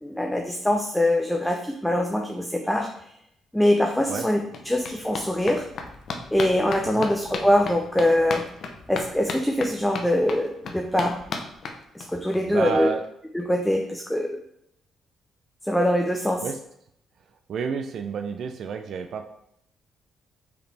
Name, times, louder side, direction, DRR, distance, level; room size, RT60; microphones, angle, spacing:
voice 1, 0.0-2.9 3.5-5.7 6.3-8.4 8.9-11.2 11.9-12.9 13.3-14.4 15.6-16.4, left 1 dB, 5° left, 2 dB, 0.5 m, -23 dB
sound 1, 3.6-3.7 3.9-12.4 12.7-12.8 13.0-13.1 13.4-13.5, left 4 dB, 60° left, 0.6 m, -36 dB
voice 2, 12.5-13.0 16.4-16.6 17.5-19.3, right 6 dB, 65° right, 6 dB, 0.3 m, -30 dB
4.9 x 3.2 x 3.3 m, 0.74 s
cardioid pair, 90°, 0 cm